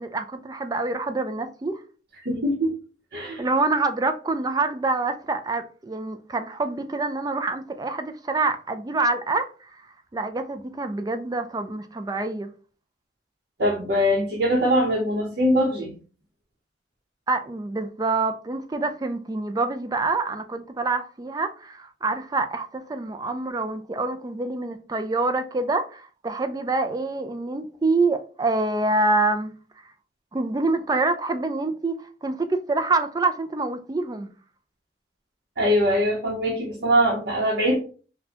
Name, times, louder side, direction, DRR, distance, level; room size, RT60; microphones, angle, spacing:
voice 1, 0.0-1.8 3.4-9.8 10.1-12.5 17.3-29.5 30.3-34.3, right 3 dB, 20° right, 0.3 m, -26 dB
voice 2, 2.2-2.7 3.1-3.4 13.6-15.9 35.6-37.8, equal, 55° right, 0.8 m, -22 dB
4.1 x 2.2 x 2.8 m
head